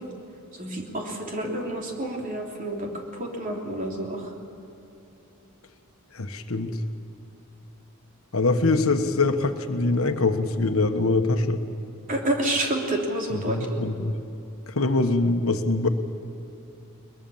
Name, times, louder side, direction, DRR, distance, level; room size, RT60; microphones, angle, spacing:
voice 1, 0.5-2.9 3.2-4.3 12.1-13.8, right 1 dB, 40° right, 0 dB, 3.4 m, -29 dB
voice 2, 6.1-6.8 8.3-11.6 13.3-14.2 14.7-15.9, left 3 dB, 70° left, 7 dB, 1.3 m, -23 dB
22.5 x 21.0 x 7.2 m, 2.9 s
head